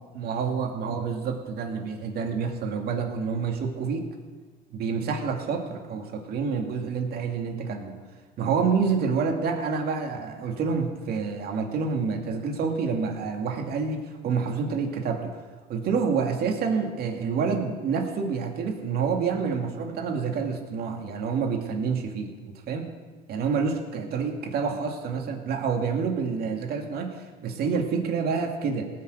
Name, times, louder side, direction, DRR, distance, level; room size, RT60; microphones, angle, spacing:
voice 1, 0.1-4.1 4.7-8.0 8.4-15.4 15.7-22.9 23.3-28.9, right 5 dB, 55° right, 3 dB, 2.4 m, -28 dB
18.5 x 6.6 x 7.8 m, 1.5 s
supercardioid pair, 95°, 19 cm